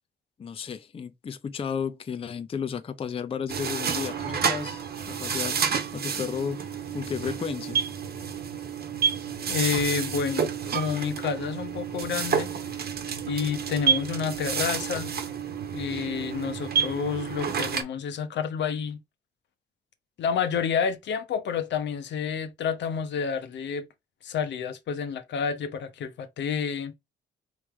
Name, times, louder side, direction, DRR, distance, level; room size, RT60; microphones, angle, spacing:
voice 1, 0.4-5.6 5.9-6.6 6.9-7.8, left 7 dB, 30° left, 0.5 m, -33 dB
sound 1, 3.5-17.8, right 7 dB, 50° right, 1.1 m, -30 dB
voice 2, 9.5-12.5 13.3-15.1 15.7-19.0 20.2-23.9 24.2-26.9, left 7 dB, 65° left, 0.8 m, -29 dB
4.3 x 3.1 x 3.6 m
cardioid pair, 90°, 20 cm